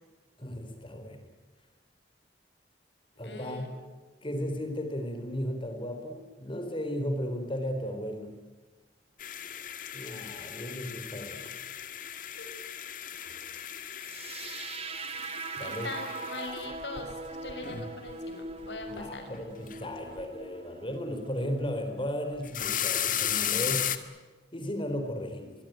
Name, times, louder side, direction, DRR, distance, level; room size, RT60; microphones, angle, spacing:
voice 1, 0.4-1.3 3.2-3.7 4.2-8.3 9.9-11.5 15.6-15.9 18.9-23.9 24.5-25.5, equal, 30° left, 6 dB, 4.0 m, -35 dB
voice 2, 3.2-3.7 12.4-12.5 15.6-19.2, left 3 dB, 75° left, 5 dB, 6.2 m, -41 dB
sound 1, 9.2-18.1 18.5-19.0 19.3-19.9 20.2-20.3 22.3-24.0, left 10 dB, 50° left, 1.9 m, -35 dB
sound 2, 14.0-22.0, right 3 dB, 35° right, 2.1 m, -41 dB
24.5 x 23.0 x 9.2 m, 1.3 s
head